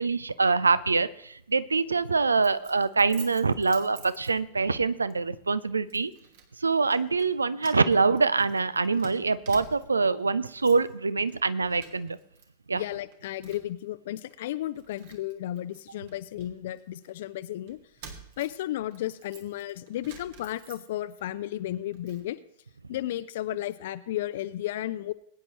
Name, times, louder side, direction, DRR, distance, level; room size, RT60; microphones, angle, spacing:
voice 1, 0.0-6.1 6.6-12.2 12.7-12.8, right 4 dB, 75° right, 16 dB, 0.5 m, -25 dB
Keys jangling, 2.4-4.7 5.1-5.3 5.9-6.5 6.8-7.3 7.6-10.1 10.4-10.9 11.2-12.4 12.7-13.8 14.3-14.4 14.7-17.1 17.7-21.2 21.6-22.3, right 6 dB, 50° right, 2.0 m, -50 dB
voice 2, 12.7-17.8 18.4-22.4 22.9-25.1, left 13 dB, 55° left, 13 dB, 0.4 m, -33 dB
21.5 x 9.7 x 3.1 m, 0.74 s
figure-of-eight pair, 90°, 0 cm